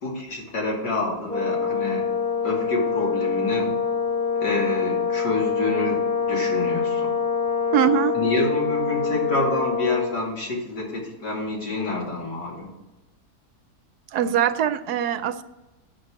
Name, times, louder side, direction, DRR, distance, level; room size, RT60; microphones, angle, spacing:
voice 1, 0.0-2.1 2.4-3.7 4.4-7.1 8.1-12.7, left 2 dB, 80° left, -3 dB, 3.1 m, -27 dB
Brass instrument, 1.3-10.2, left 6 dB, 25° left, 1.9 m, -25 dB
voice 2, 7.7-8.2 14.1-15.4, right 10 dB, 75° right, 12 dB, 1.1 m, -22 dB
8.3 x 6.6 x 6.2 m, 1.1 s
omnidirectional pair, 1.8 m